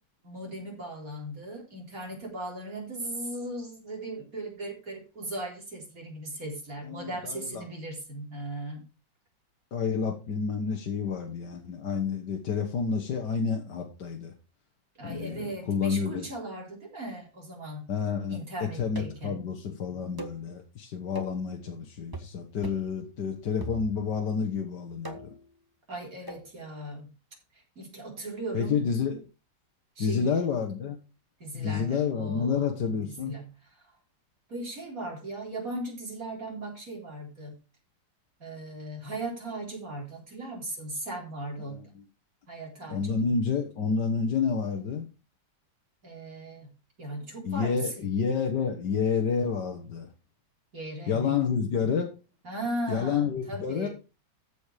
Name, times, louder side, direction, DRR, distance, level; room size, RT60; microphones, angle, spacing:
voice 1, 0.2-8.8 15.0-17.8 18.3-19.4 25.9-27.1 27.5-28.8 30.0-30.4 31.4-32.7 33.1-33.5 34.5-37.6 38.4-41.8 42.5-43.2 46.0-46.7 47.0-48.1 50.7-51.4 52.4-53.9, right 1 dB, 50° right, -1 dB, 4.3 m, -37 dB
voice 2, 6.8-7.7 9.7-14.3 15.0-16.3 17.9-25.3 28.5-29.2 30.0-31.0 31.5-33.4 41.6-41.8 42.9-45.1 47.5-50.1 51.1-52.1 52.9-53.9, left 6 dB, 70° left, 3 dB, 1.8 m, -29 dB
sound 1, 19.0-19.3 20.2-20.5 21.2-21.5 22.1-22.4 22.6-22.9 23.6-24.2 25.0-25.5 26.3-26.5, right 3 dB, 15° right, 1.3 m, -41 dB
14.0 x 5.2 x 4.9 m, 0.31 s
omnidirectional pair, 1.9 m